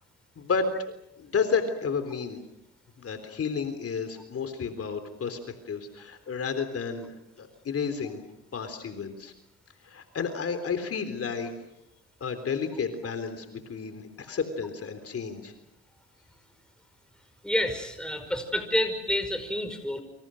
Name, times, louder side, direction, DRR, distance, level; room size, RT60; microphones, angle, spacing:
voice 1, 0.4-0.7 1.2-2.4 3.0-5.4 5.7-7.1 7.4-8.2 8.5-9.3 9.8-11.5 12.2-15.5, left 5 dB, 50° left, 8 dB, 3.7 m, -31 dB
voice 2, 17.4-20.0, left 1 dB, 5° left, 7 dB, 5.5 m, -28 dB
28.5 x 26.0 x 6.5 m, 0.87 s
cardioid pair, 90°, 30 cm